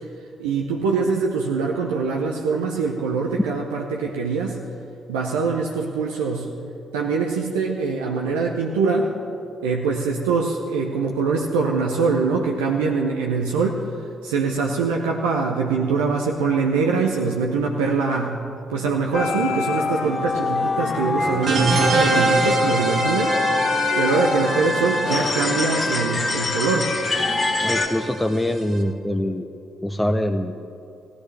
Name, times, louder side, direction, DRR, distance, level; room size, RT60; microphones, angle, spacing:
voice 1, 0.4-4.6 5.1-6.5 6.9-9.1 9.6-13.8 14.2-18.4 18.7-23.4 24.0-26.9, right 4 dB, 85° right, 0 dB, 0.7 m, -23 dB
sound 1, 19.1-27.9, left 3 dB, 40° left, 1.7 m, -24 dB
sound 2, 21.4-28.8, right 3 dB, 65° right, 1.6 m, -26 dB
voice 2, 27.6-29.5 29.8-30.6, left 1 dB, 10° left, 4 dB, 0.7 m, -24 dB
16.5 x 14.0 x 3.3 m, 2.7 s
hypercardioid pair, 45°, 0 cm